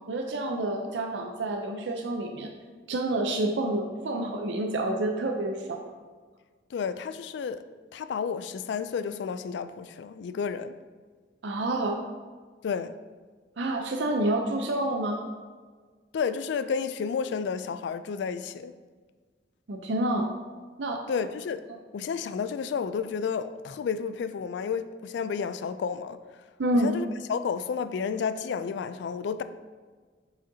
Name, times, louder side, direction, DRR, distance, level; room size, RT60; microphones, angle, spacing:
voice 1, 0.1-2.5 2.9-5.8 11.4-12.0 13.6-15.2 19.7-20.3 20.8-21.0 26.6-26.9, right 1 dB, 80° right, 0.6 m, -28 dB
voice 2, 6.7-7.6 7.9-10.8 12.6-12.9 16.1-18.7 21.1-21.6 21.9-26.2 26.8-29.4, left 6 dB, 75° left, 0.3 m, -31 dB
7.1 x 4.9 x 2.7 m
head